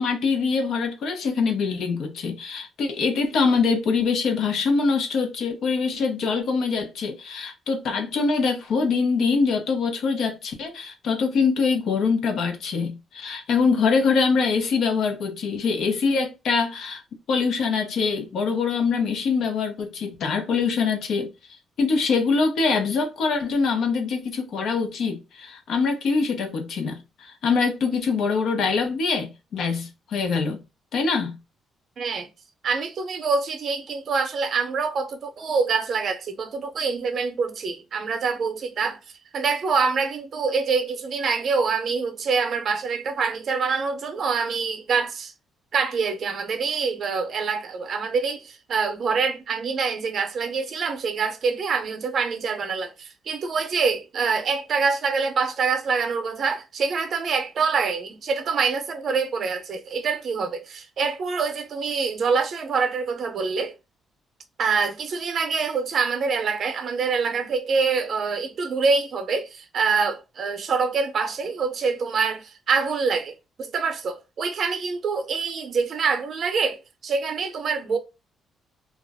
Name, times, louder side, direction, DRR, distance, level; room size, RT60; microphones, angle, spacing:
voice 1, 0.0-17.0 17.3-21.3 21.8-30.6 30.9-31.4, left 5 dB, 70° left, 0.7 m, -24 dB
voice 2, 32.0-32.3 32.6-39.0 39.3-45.3 45.7-63.7 64.6-78.0, right 5 dB, 55° right, 0.6 m, -25 dB
2.3 x 2.1 x 3.4 m
cardioid pair, 90°, 0 cm